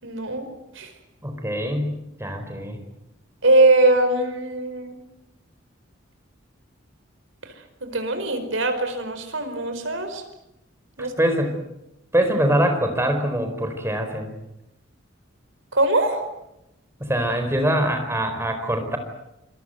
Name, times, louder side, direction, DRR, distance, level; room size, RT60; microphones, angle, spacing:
voice 1, 0.0-0.9 3.4-5.0 7.4-7.5 7.8-10.2 11.0-11.2 15.7-16.2, right 2 dB, 75° right, 8 dB, 4.9 m, -21 dB
voice 2, 1.2-2.8 11.0-11.6 12.1-14.3 17.0-19.0, right 1 dB, 15° right, 6 dB, 4.4 m, -23 dB
26.5 x 21.5 x 8.0 m, 0.87 s
head